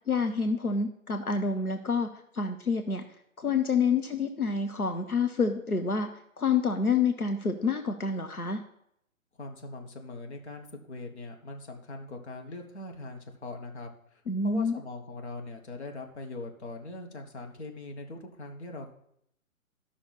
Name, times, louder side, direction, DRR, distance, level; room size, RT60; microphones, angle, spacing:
voice 1, 0.0-2.1 2.3-3.0 3.4-6.1 6.4-8.6 14.3-14.7, left 5 dB, 90° left, 6 dB, 1.0 m, -28 dB
voice 2, 9.4-18.9, left 2 dB, 50° left, 3 dB, 1.6 m, -41 dB
13.5 x 6.0 x 4.2 m, 0.73 s
figure-of-eight pair, 130°, 43 cm